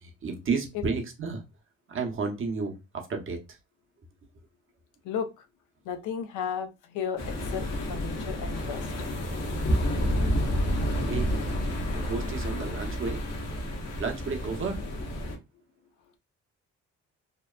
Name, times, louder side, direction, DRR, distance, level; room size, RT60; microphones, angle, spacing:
voice 1, 0.0-1.4 1.9-2.7 3.1-3.4 10.0-10.1 11.0-11.5 11.9-13.2 14.0-14.8, right 4 dB, 45° right, 0.7 m, -32 dB
voice 2, 5.0-5.5 5.8-8.9, left 7 dB, 80° left, 0.5 m, -34 dB
sound 1, 7.2-15.4, equal, 60° left, 0.8 m, -29 dB
2.8 x 2.0 x 2.3 m
cardioid pair, 90°, 30 cm